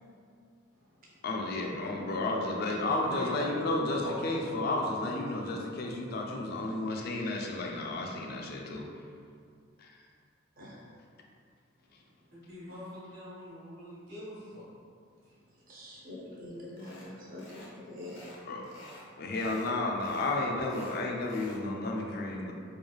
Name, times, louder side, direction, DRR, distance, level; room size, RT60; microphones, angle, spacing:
voice 1, 1.2-8.8 18.4-18.7 18.9-22.5, left 2 dB, 50° left, 0 dB, 0.3 m, -32 dB
voice 2, 2.6-4.9 12.3-14.6 15.2-15.3 17.0-17.2, equal, 75° right, -10 dB, 1.3 m, -43 dB
voice 3, 15.7-18.2, left 1 dB, 45° right, -6 dB, 0.6 m, -45 dB
sound 1, 16.8-17.1 17.4-17.7 18.0-19.1 19.3-19.7 20.0-21.6, left 1 dB, 85° left, 0.6 m, -51 dB
3.1 x 2.2 x 2.3 m, 2.3 s
head